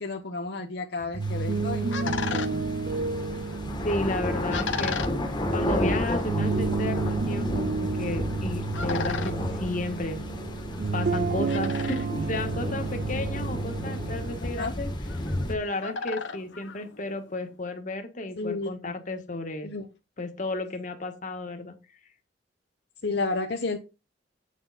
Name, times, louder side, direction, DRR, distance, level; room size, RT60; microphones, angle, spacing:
voice 1, 0.0-2.6 14.5-14.7 18.4-18.9 19.6-19.9 23.0-23.8, left 3 dB, 60° left, 0.9 m, -32 dB
sound 1, 1.0-14.4, right 3 dB, 55° right, 0.5 m, -31 dB
sound 2, 1.2-17.5, left 5 dB, 85° left, 1.0 m, -39 dB
sound 3, 1.2-15.5, left 1 dB, 25° left, 1.4 m, -32 dB
voice 2, 3.8-5.0 5.5-10.2 10.9-14.9 15.5-19.7 20.2-21.7, left 2 dB, 40° left, 1.4 m, -33 dB
8.5 x 6.4 x 4.1 m
head